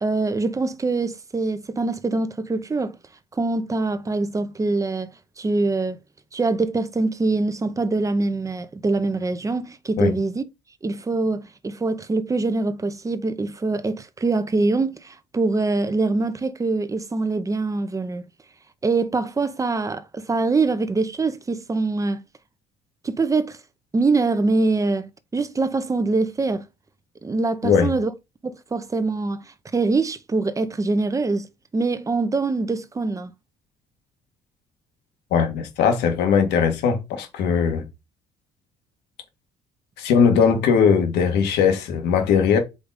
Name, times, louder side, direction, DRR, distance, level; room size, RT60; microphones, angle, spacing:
voice 1, 0.0-3.0 3.3-5.1 5.4-6.0 6.3-10.4 10.8-18.3 18.8-22.2 23.0-23.6 23.9-26.6 27.2-28.1 28.4-33.3, right 3 dB, 20° right, 0.8 m, -24 dB
voice 2, 35.3-37.8 40.0-42.6, left 6 dB, 85° left, 1.8 m, -19 dB
5.1 x 3.9 x 4.9 m
cardioid pair, 110°, 17 cm